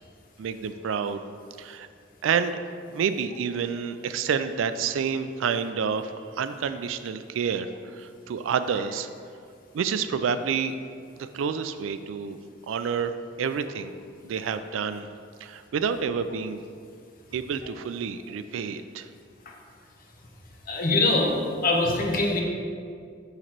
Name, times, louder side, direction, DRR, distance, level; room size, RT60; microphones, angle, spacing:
voice 1, 0.4-1.2 1.6-1.9 2.2-2.6 2.9-9.1 9.7-10.7 11.2-12.4 12.7-13.9 14.2-15.1 15.4-16.6 17.3-19.1, right 6 dB, 85° right, 11 dB, 0.3 m, -29 dB
voice 2, 20.7-21.3 21.6-22.4, left 2 dB, 50° left, 0 dB, 0.9 m, -22 dB
6.5 x 3.1 x 5.9 m, 2.3 s
head